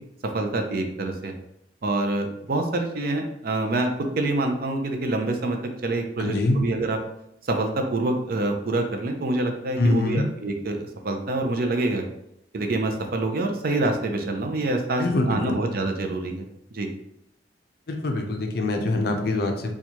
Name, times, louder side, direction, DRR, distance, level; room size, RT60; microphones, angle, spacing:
voice 1, 0.2-1.3 1.8-3.9 4.2-7.0 7.5-12.0 12.5-16.9, right 2 dB, 55° right, 4 dB, 0.5 m, -26 dB
voice 2, 6.2-6.6 9.8-10.2 15.0-15.6 17.9-19.7, left 2 dB, 60° left, 3 dB, 0.5 m, -24 dB
4.3 x 2.3 x 2.9 m, 0.78 s
head